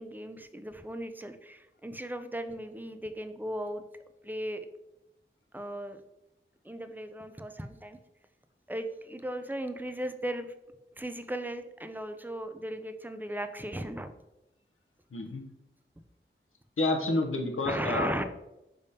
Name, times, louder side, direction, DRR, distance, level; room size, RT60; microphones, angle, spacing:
voice 1, 0.0-3.8 4.2-4.7 5.5-6.0 6.6-8.0 8.7-10.5 11.0-14.1 17.6-18.2, right 1 dB, 10° right, 8 dB, 0.4 m, -36 dB
voice 2, 15.1-15.4 16.8-18.1, left 2 dB, 85° left, 3 dB, 0.7 m, -29 dB
5.0 x 3.5 x 2.7 m, 0.92 s
wide cardioid pair, 55°, 21 cm